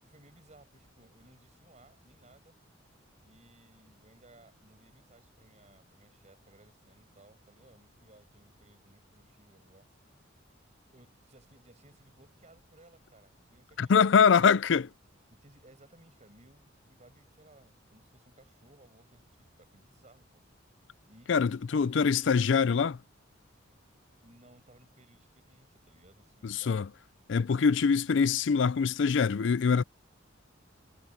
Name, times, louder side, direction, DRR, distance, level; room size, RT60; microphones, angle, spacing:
voice 1, 0.0-2.6 3.2-9.9 10.9-14.1 15.3-20.6 21.1-21.3 21.7-22.4 24.2-26.8, right 1 dB, 35° right, 6.4 m, -60 dB
voice 2, 13.8-14.9 21.3-23.0 26.4-26.9 27.3-29.8, left 6 dB, 65° left, 0.4 m, -24 dB
head